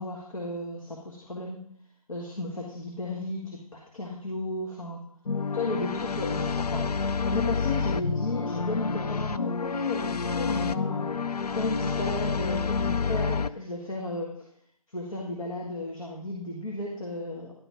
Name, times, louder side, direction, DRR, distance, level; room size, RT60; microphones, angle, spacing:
voice 1, 0.0-1.6 2.1-5.0 5.5-6.9 7.2-11.1 11.5-14.3 14.9-17.5, left 2 dB, 60° left, -2 dB, 1.7 m, -34 dB
sound 1, 5.3-13.5, left 5 dB, 80° left, 0.4 m, -29 dB
11.0 x 4.1 x 5.2 m, 0.67 s
figure-of-eight pair, 155°, 20 cm